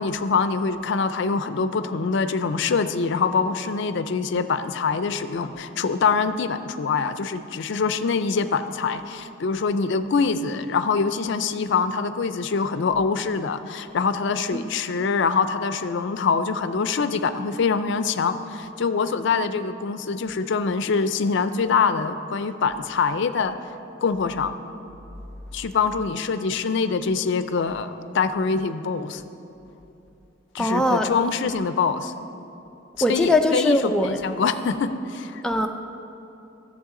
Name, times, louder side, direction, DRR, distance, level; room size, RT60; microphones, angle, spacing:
voice 1, 0.0-23.6 24.0-24.5 25.5-29.2 30.5-32.1 33.1-35.4, left 5 dB, 65° left, 11 dB, 0.4 m, -24 dB
voice 2, 30.6-31.1 33.0-34.2 35.4-35.7, left 1 dB, 5° left, 3 dB, 0.4 m, -21 dB
14.5 x 7.3 x 3.7 m, 2.9 s
head